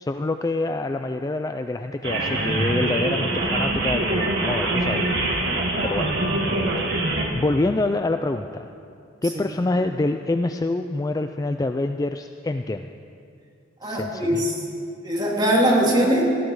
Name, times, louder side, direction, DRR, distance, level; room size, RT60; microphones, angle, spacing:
voice 1, 0.0-5.0 5.8-6.1 7.3-8.7 9.2-12.9 13.8-14.4, left 2 dB, 15° left, 7 dB, 0.3 m, -26 dB
sound 1, 2.0-7.3, right 2 dB, 55° right, 2.2 m, -24 dB
voice 2, 13.8-14.6 15.0-16.2, right 1 dB, 20° right, -3 dB, 2.7 m, -21 dB
18.0 x 14.5 x 4.8 m, 2.5 s
head